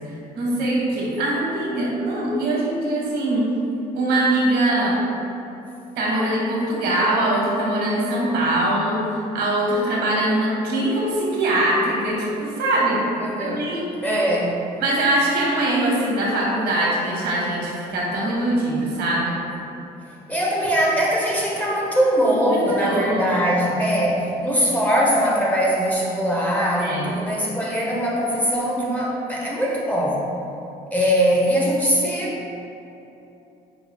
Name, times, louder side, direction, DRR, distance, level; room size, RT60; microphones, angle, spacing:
voice 1, 0.1-3.5 3.9-5.0 6.0-13.1 13.4-13.9 14.8-19.4 22.5-23.2 26.8-27.1, right 1 dB, 75° right, -4 dB, 1.2 m, -22 dB
voice 2, 13.2-13.7 14.0-14.6 20.3-30.3 30.9-32.5, equal, 10° left, -4 dB, 0.7 m, -21 dB
5.7 x 2.3 x 3.5 m, 2.9 s
cardioid pair, 110°, 17 cm